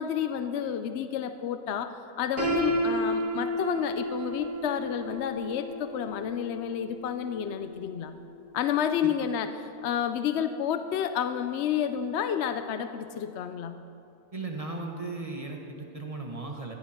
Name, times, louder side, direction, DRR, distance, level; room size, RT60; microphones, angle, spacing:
voice 1, 0.0-8.1 8.5-9.5 9.8-13.8, left 9 dB, 65° left, 10 dB, 0.8 m, -30 dB
Piano, 2.4-8.2, right 1 dB, 65° right, 3.3 m, -32 dB
voice 2, 14.3-16.7, right 3 dB, 25° right, 1 dB, 1.3 m, -36 dB
15.0 x 10.5 x 5.9 m, 2.6 s
omnidirectional pair, 1.4 m